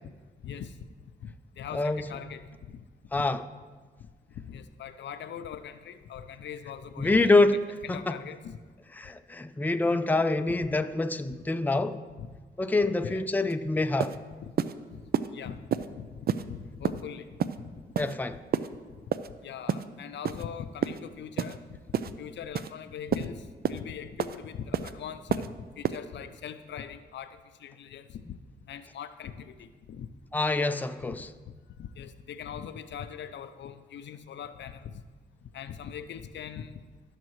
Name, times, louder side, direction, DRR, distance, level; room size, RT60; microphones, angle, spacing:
voice 1, 0.4-0.8 1.2-2.5 2.7-2.8 3.1-3.2 4.3-7.5 7.8-8.6 12.2-12.3 12.8-13.3 14.4-14.5 14.9-15.0 15.3-17.3 17.5-17.7 19.4-21.8 22.1-28.4 28.6-30.1 31.1-31.2 31.5-35.0 35.5-36.8, left 8 dB, 80° left, 0.5 m, -41 dB
voice 2, 7.0-7.6 7.9-8.2 9.0-12.0 12.6-14.1 18.0-18.4 30.3-31.3, left 2 dB, 10° left, 0.4 m, -26 dB
sound 1, 13.5-13.6 14.0-14.2 14.6-14.7 15.1-15.3 15.7-15.9 16.3-16.4 16.8-17.0 17.4-17.6 17.9-18.1 18.5-18.7 19.1-19.3 19.7-19.8 20.2-20.4 20.8-21.0 21.4-21.6 21.9-22.1 22.5-22.7 23.1-23.3 23.6-23.8 24.2-24.4 24.7-24.9 25.3-25.5 25.8-26.0, right 8 dB, 60° right, 0.4 m, -28 dB
15.5 x 6.5 x 3.1 m
cardioid pair, 80°, 18 cm